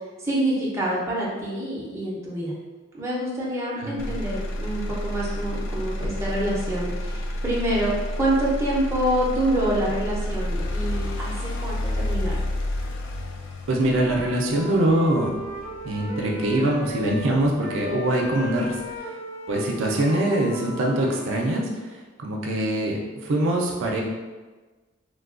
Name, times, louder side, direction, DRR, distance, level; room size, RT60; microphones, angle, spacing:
voice 1, 0.2-2.5 2.9-7.9 8.2-12.5, right 1 dB, 15° right, -6 dB, 0.5 m, -26 dB
Motor vehicle (road), 4.0-18.0 18.5-19.0, left 1 dB, 75° left, 0.3 m, -30 dB
Wind instrument woodwind instrument, 13.7-17.3 17.6-21.5, left 1 dB, 40° left, 0.8 m, -37 dB
voice 2, 13.7-15.3 15.8-19.1 19.5-21.6 22.2-24.0, right 1 dB, 70° right, -1 dB, 0.4 m, -23 dB
3.2 x 2.2 x 2.4 m, 1.3 s
head